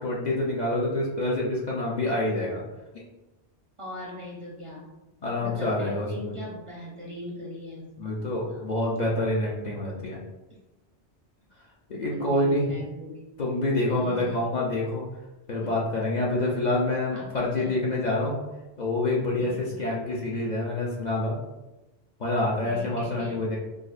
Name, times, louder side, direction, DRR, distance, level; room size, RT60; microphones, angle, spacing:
voice 1, 0.0-2.6 5.2-6.3 8.0-10.2 11.9-12.7 13.4-15.0 15.5-18.4 18.8-21.4 22.2-23.6, left 1 dB, 50° left, -4 dB, 0.6 m, -27 dB
voice 2, 3.8-4.9 5.4-8.6 12.1-13.3 13.9-14.5 15.6-15.8 17.1-17.3 17.6-17.8 19.4-19.8 22.6-23.4, left 1 dB, 40° right, -5 dB, 0.5 m, -40 dB
4.9 x 2.0 x 2.4 m, 1.1 s
omnidirectional pair, 1.1 m